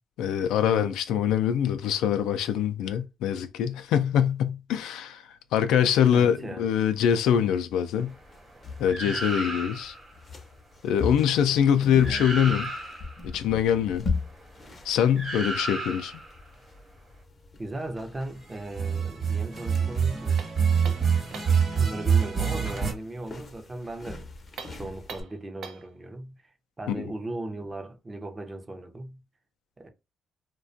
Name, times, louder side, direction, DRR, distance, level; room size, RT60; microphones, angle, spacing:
voice 1, 0.2-5.2 5.5-8.1 8.8-9.9 10.8-12.7 13.2-14.1 14.9-16.2 26.9-27.1, left 9 dB, 90° left, 0.3 m, -24 dB
voice 2, 6.0-6.7 9.0-9.2 12.0-12.3 17.6-20.4 21.8-24.3 24.7-26.4 26.8-29.2 29.8-29.9, right 2 dB, 25° right, 0.5 m, -37 dB
sound 1, 8.1-25.2, left 4 dB, 40° left, 0.5 m, -40 dB
sound 2, 8.9-10.0 11.7-11.8 12.0-13.2 15.2-16.3 18.7-22.9, right 6 dB, 45° right, 1.1 m, -27 dB
sound 3, 20.4-21.7 24.5-25.9, right 6 dB, 75° right, 0.5 m, -43 dB
2.4 x 2.2 x 2.5 m
cardioid pair, 90°, 0 cm